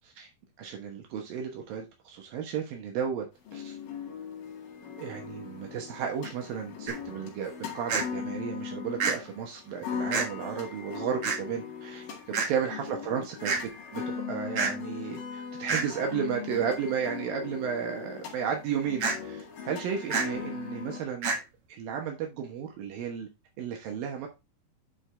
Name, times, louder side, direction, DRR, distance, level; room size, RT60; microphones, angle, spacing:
voice 1, 0.6-3.3 3.5-3.8 5.0-13.5 13.9-21.3 21.7-23.3 23.6-24.3, right 7 dB, 75° right, 3.0 m, -33 dB
sound 1, 3.4-21.0, left 7 dB, 70° left, 3.8 m, -39 dB
sound 2, 6.9-7.0 7.9-8.0 9.0-9.1 10.1-10.3 11.2-11.4 12.3-12.5 13.4-13.6 14.6-14.7 15.7-15.9 19.0-19.2 20.1-20.3 21.2-21.4, right 5 dB, 50° right, 2.2 m, -27 dB
10.5 x 4.7 x 3.4 m
omnidirectional pair, 4.3 m